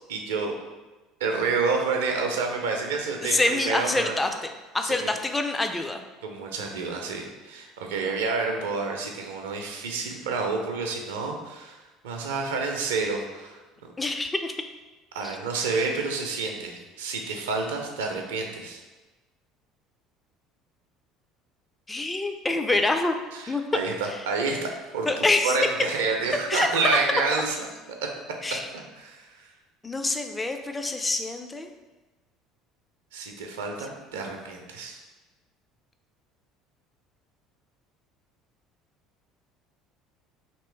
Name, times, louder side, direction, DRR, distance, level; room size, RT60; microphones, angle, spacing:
voice 1, 0.1-0.5 1.2-4.2 4.8-5.1 6.2-13.9 15.1-18.8 23.3-25.1 25.4-27.5 28.0-28.1 28.7-29.3 33.1-35.0, right 4 dB, 70° right, 2 dB, 0.5 m, -29 dB
voice 2, 3.2-4.5 4.7-6.0 14.0-14.5 15.2-15.4 21.9-23.1 23.5-23.6 25.1-25.6 26.5-27.0 28.4-28.7 29.8-31.7, left 2 dB, 15° left, 6 dB, 0.4 m, -26 dB
3.0 x 2.9 x 4.5 m, 1.2 s
figure-of-eight pair, 60°, 0 cm